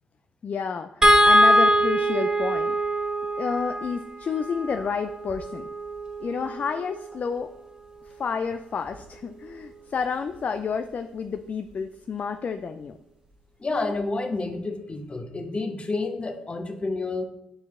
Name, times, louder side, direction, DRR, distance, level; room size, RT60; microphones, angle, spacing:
voice 1, 0.4-2.8 3.4-5.7 6.2-7.5 8.1-13.0, left 6 dB, 45° left, 8 dB, 0.4 m, -30 dB
sound 1, 1.0-7.3 8.9-9.0 9.4-9.5, right 1 dB, 20° right, 1.4 m, -23 dB
voice 2, 13.6-17.2, left 3 dB, 30° left, 6 dB, 1.0 m, -29 dB
6.5 x 4.6 x 3.7 m, 0.81 s
hypercardioid pair, 45°, 4 cm